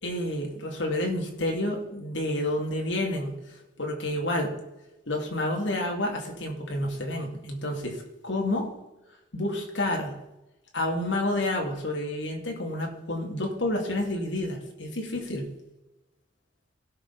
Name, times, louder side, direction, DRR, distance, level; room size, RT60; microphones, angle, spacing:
voice 1, 0.0-4.6 5.1-8.7 9.3-10.2 10.7-15.5, left 1 dB, 70° left, 1 dB, 2.5 m, -29 dB
17.0 x 6.2 x 4.1 m, 0.96 s
head